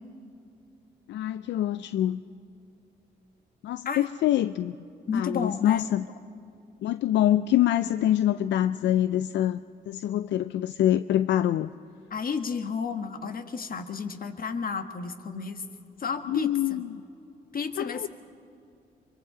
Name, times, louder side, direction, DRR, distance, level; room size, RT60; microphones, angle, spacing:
voice 1, 1.1-2.2 3.6-4.7 5.1-6.1 6.8-11.7 16.3-17.0 17.8-18.1, left 12 dB, 80° left, 13 dB, 0.4 m, -25 dB
voice 2, 5.1-5.9 12.1-15.6 16.0-16.8 17.5-18.1, left 5 dB, 50° left, 8 dB, 1.5 m, -32 dB
24.0 x 23.5 x 5.0 m, 2.5 s
cardioid pair, 70°, 18 cm